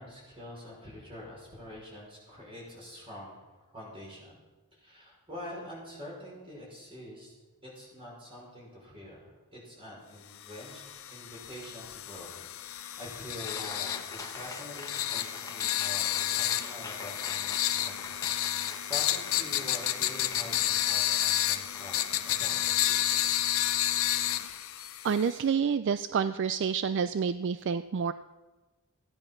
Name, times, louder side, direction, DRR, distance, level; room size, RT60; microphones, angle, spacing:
voice 1, 0.0-4.4 4.7-7.3 7.6-10.8 11.1-12.3 12.7-23.3, left 1 dB, 25° right, -3 dB, 5.5 m, -46 dB
sound 1, 10.5-25.4, left 12 dB, 65° left, 0.7 m, -31 dB
Cheering, 13.5-22.4, left 3 dB, 15° left, 1.5 m, -46 dB
voice 2, 25.0-28.1, right 6 dB, 55° right, 12 dB, 0.4 m, -28 dB
15.5 x 10.5 x 6.0 m, 1.2 s
head